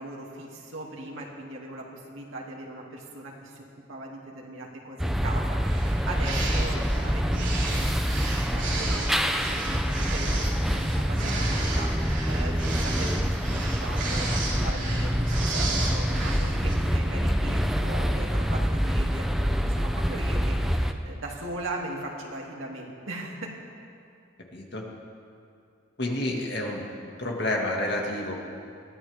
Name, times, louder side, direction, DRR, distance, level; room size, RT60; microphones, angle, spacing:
voice 1, 0.0-3.6 3.9-7.9 8.1-23.5, right 2 dB, 90° right, -2 dB, 2.6 m, -39 dB
sound 1, 5.0-20.9, equal, ahead, 0.5 m, -26 dB
sound 2, 5.6-16.7, right 3 dB, 65° right, 4.3 m, -34 dB
voice 2, 24.5-24.8 26.0-26.9 27.2-28.3, left 1 dB, 55° left, -1 dB, 2.1 m, -29 dB
22.0 x 16.0 x 3.6 m, 2.5 s
head